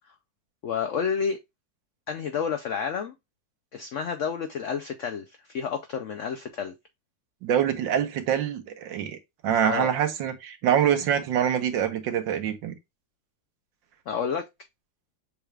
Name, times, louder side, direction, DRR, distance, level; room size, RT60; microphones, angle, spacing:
voice 1, 0.6-1.4 2.1-3.1 3.7-6.7 9.7-9.9 14.1-14.5, left 6 dB, 80° left, 0.6 m, -30 dB
voice 2, 7.4-9.2 9.4-12.8, right 9 dB, 85° right, 1.6 m, -25 dB
6.8 x 2.4 x 3.2 m
omnidirectional pair, 2.0 m